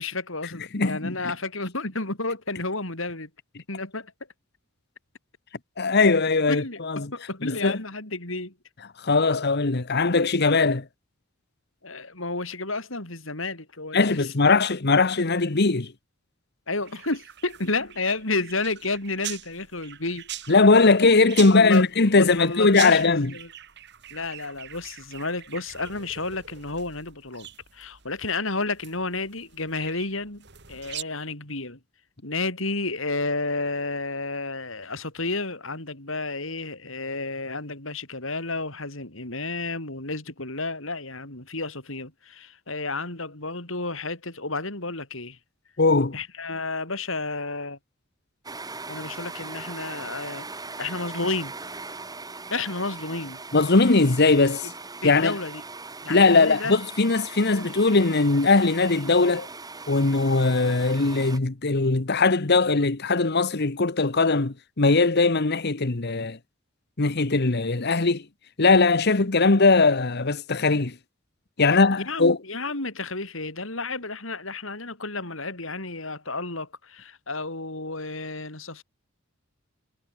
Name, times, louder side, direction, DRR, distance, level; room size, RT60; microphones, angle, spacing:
voice 1, 0.0-3.3 3.7-4.1 6.5-8.5 11.8-14.6 16.7-20.3 20.8-20.9 21.5-21.9 22.2-23.5 24.1-31.8 32.2-45.4 46.1-47.8 48.9-50.5 50.8-51.5 52.5-53.4 54.6-54.7 55.0-55.6 56.0-56.8 71.6-78.8, left 3 dB, 70° left, 5.7 m, -31 dB
voice 2, 0.7-1.2 5.8-7.1 7.4-7.8 9.0-10.8 13.9-15.9 20.5-23.3 45.8-46.2 53.5-54.7 55.0-55.3 56.1-59.5 59.9-66.4 67.0-68.2 68.6-70.9 71.6-72.4, left 3 dB, 55° left, 1.2 m, -20 dB
sound 1, 16.8-31.0, right 11 dB, 55° right, 7.5 m, -42 dB
sound 2, 48.4-61.4, right 3 dB, 20° right, 3.5 m, -40 dB
head